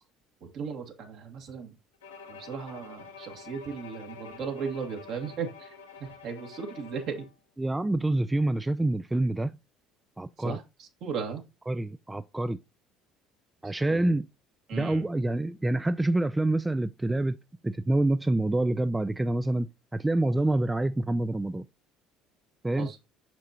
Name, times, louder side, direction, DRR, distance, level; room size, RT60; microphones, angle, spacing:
voice 1, 0.4-1.7 2.3-5.7 6.2-7.3 10.4-11.4 13.8-14.1 14.7-15.0 22.7-23.0, right 6 dB, 60° right, 1.9 m, -36 dB
Bowed string instrument, 2.0-7.4, left 5 dB, 85° left, 1.1 m, -48 dB
voice 2, 7.6-9.5 10.2-10.6 11.7-12.6 13.6-14.3 14.7-17.4 17.6-19.7 19.9-21.7 22.6-22.9, right 2 dB, 15° right, 0.4 m, -27 dB
6.6 x 6.0 x 2.9 m
hypercardioid pair, 60°, 0 cm